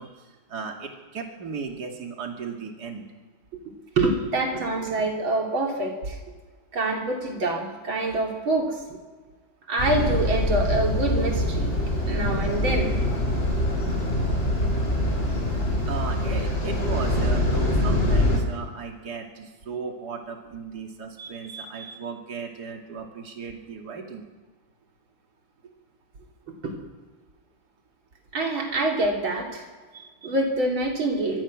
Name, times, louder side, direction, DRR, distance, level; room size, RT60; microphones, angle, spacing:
voice 1, 0.0-3.1 15.5-24.3 29.9-30.3, right 5 dB, 55° right, 2 dB, 2.9 m, -36 dB
voice 2, 3.7-6.2 6.7-8.8 9.7-11.8 12.1-13.0 26.6-26.8 28.3-29.7 30.2-31.4, right 2 dB, 90° right, 1 dB, 4.0 m, -26 dB
sound 1, 9.8-18.4, left 1 dB, 35° left, 5.4 m, -24 dB
24.5 x 19.0 x 6.3 m, 1.4 s
omnidirectional pair, 2.1 m